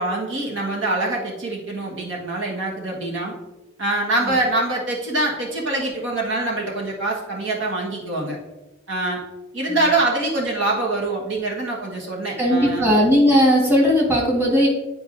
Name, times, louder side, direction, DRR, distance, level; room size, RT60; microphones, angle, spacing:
voice 1, 0.0-3.3 3.8-8.4 8.9-9.2 9.5-12.9, right 2 dB, 85° right, -2 dB, 1.5 m, -24 dB
voice 2, 12.4-14.7, equal, 10° right, -4 dB, 1.6 m, -17 dB
10.0 x 4.5 x 2.7 m, 1.1 s
head